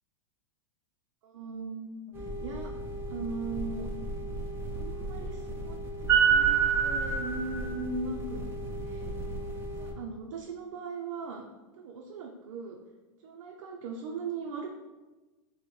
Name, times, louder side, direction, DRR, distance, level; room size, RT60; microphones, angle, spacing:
voice 1, 1.2-2.7 3.1-3.9 4.7-8.4 8.8-9.2 9.8-11.5 11.7-12.8 13.2-14.7, right 4 dB, 75° right, 0 dB, 0.5 m, -39 dB
sound 1, 2.1-9.9, right 5 dB, 15° right, 0.4 m, -30 dB
4.1 x 2.1 x 3.1 m, 1.2 s
supercardioid pair, 145°, 16 cm